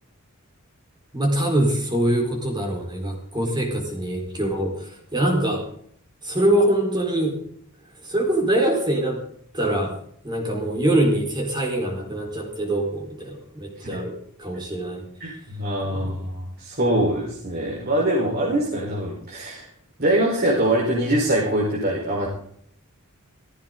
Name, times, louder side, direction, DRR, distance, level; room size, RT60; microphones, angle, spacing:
voice 1, 1.1-5.6 6.2-7.4 8.0-9.2 9.5-10.0 10.2-15.1 15.9-16.2, right 1 dB, 20° right, 1 dB, 4.4 m, -24 dB
voice 2, 15.2-19.7 20.0-22.3, right 1 dB, 45° right, -3 dB, 4.6 m, -23 dB
16.5 x 16.0 x 4.0 m, 0.63 s
head